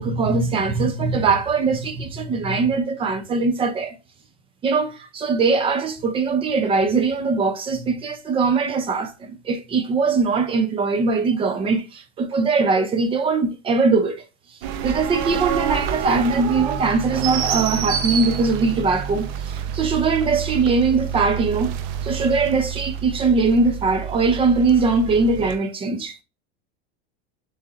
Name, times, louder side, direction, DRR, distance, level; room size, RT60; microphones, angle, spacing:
voice 1, 0.0-3.9 4.6-14.2 14.8-21.7 22.0-26.2, right 4 dB, 15° right, 0.5 m, -21 dB
sound 1, 14.6-25.6, right 8 dB, 50° right, 0.7 m, -28 dB
6.6 x 3.1 x 2.4 m
supercardioid pair, 150°, 34 cm